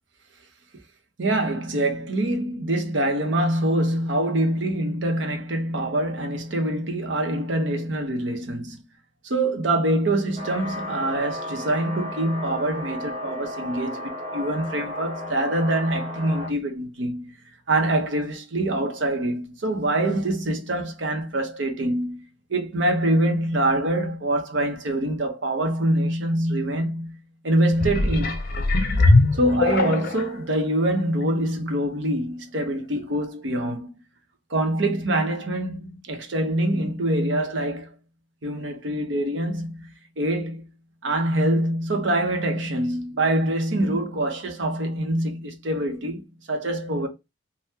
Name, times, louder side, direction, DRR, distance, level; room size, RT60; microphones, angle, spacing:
voice 1, 1.2-8.8 9.2-17.3 17.7-22.2 22.5-28.4 29.3-33.9 34.5-37.9 38.4-40.7 41.0-47.1, right 1 dB, 70° right, 0.8 m, -25 dB
sound 1, 10.4-16.5, left 1 dB, 35° right, 1.0 m, -34 dB
sound 2, 27.7-30.4 31.0-31.1, left 2 dB, 50° left, 0.5 m, -20 dB
3.5 x 2.2 x 2.8 m
head